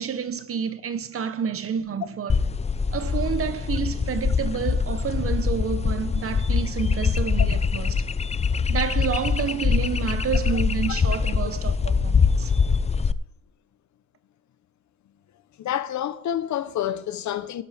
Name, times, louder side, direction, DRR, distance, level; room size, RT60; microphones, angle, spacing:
voice 1, 0.0-2.4 2.9-8.0 8.7-12.5, right 7 dB, 50° right, 1.1 m, -29 dB
sound 1, 2.3-13.1, left 5 dB, 20° left, 0.5 m, -23 dB
voice 2, 15.6-17.6, left 10 dB, 70° left, 1.0 m, -28 dB
18.5 x 9.3 x 3.6 m
cardioid pair, 90°, 30 cm